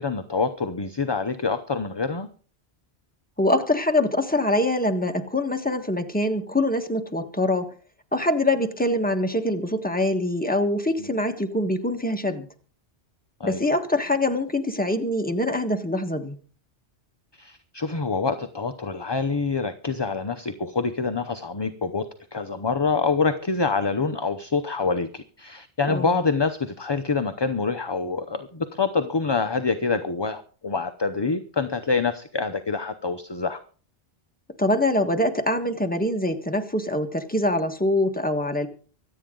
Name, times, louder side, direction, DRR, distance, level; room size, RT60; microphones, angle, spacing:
voice 1, 0.0-2.3 13.4-13.7 17.4-33.6, left 4 dB, 25° left, 9 dB, 0.6 m, -26 dB
voice 2, 3.4-7.7 8.1-12.5 13.4-16.4 25.8-26.2 34.6-38.7, left 1 dB, 10° left, 5 dB, 1.4 m, -24 dB
25.0 x 8.9 x 3.8 m, 0.40 s
omnidirectional pair, 1.2 m